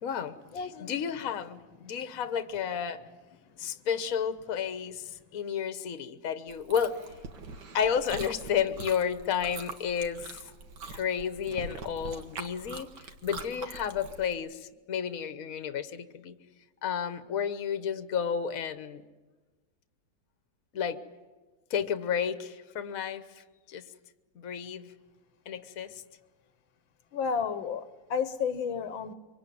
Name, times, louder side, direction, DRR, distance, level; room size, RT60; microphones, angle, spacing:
voice 1, 0.0-0.3 0.8-3.0 3.6-7.0 7.7-10.4 10.9-12.9 13.2-16.3 16.8-19.0 20.7-21.0 21.7-23.4 23.7-23.8 24.4-24.9 25.5-26.0, left 7 dB, 50° left, 1.5 m, -31 dB
voice 2, 0.5-1.2 27.1-29.1, left 6 dB, 85° left, 1.9 m, -32 dB
Chewing mastication, 6.5-14.3, right 4 dB, 65° right, 2.1 m, -43 dB
25.0 x 24.5 x 9.4 m
omnidirectional pair, 2.1 m